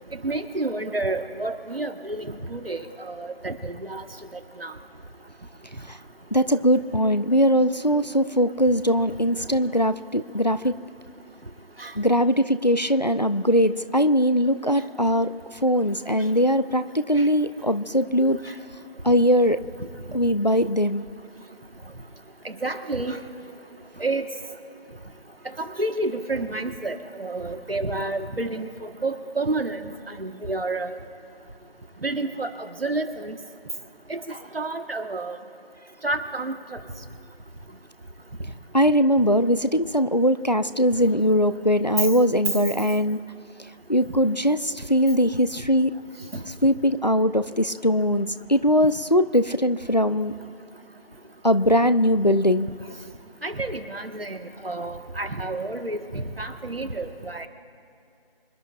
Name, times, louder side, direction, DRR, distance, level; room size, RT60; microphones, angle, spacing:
voice 1, 0.2-4.0 4.6-4.7 11.8-11.9 17.2-17.3 22.4-23.2 24.0-24.2 25.6-29.9 30.2-30.9 32.0-33.3 34.1-35.4 36.0-36.8 53.4-57.5, right 2 dB, 70° right, 7 dB, 1.6 m, -30 dB
voice 2, 6.3-10.7 12.0-15.3 15.6-18.4 19.0-19.6 20.1-21.0 38.7-43.2 43.9-45.9 46.5-50.3 51.4-52.7, equal, 45° left, 11 dB, 0.5 m, -21 dB
26.0 x 12.0 x 2.5 m, 2.6 s
figure-of-eight pair, 175°, 31 cm